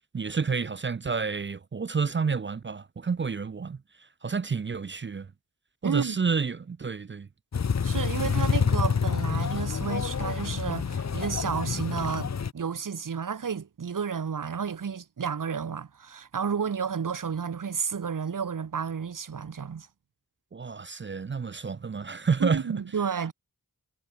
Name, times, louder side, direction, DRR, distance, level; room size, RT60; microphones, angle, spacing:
voice 1, 0.1-3.8 4.2-5.3 5.8-7.3 20.5-22.8, right 5 dB, 30° right, 0.6 m, -29 dB
voice 2, 5.8-6.4 7.8-19.9 22.4-23.3, right 6 dB, 60° right, 1.3 m, -31 dB
sound 1, 7.5-12.5, left 6 dB, 45° left, 0.9 m, -27 dB
cardioid pair, 60°, 36 cm